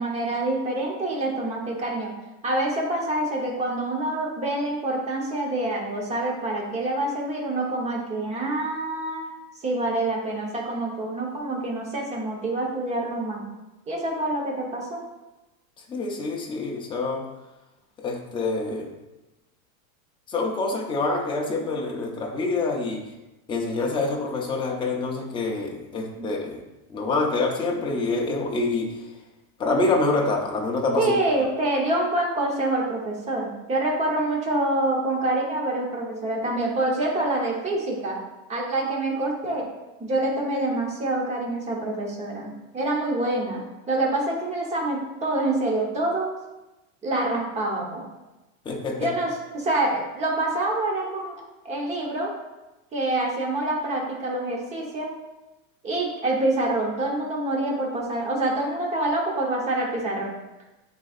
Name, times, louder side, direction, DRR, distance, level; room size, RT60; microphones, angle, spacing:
voice 1, 0.0-2.1 2.4-9.2 9.6-13.5 13.9-15.0 26.0-26.3 31.0-38.2 38.5-39.7 40.0-46.3 47.0-48.0 49.0-52.3 52.9-55.1 55.8-60.4, right 2 dB, 15° right, -2 dB, 1.1 m, -26 dB
voice 2, 15.9-17.2 18.0-18.9 20.3-23.1 23.5-26.6 26.9-29.0 29.6-31.1 31.4-31.5 48.7-49.1, left 3 dB, 10° left, 0 dB, 0.5 m, -26 dB
8.9 x 4.2 x 2.5 m, 1.0 s
supercardioid pair, 155°, 42 cm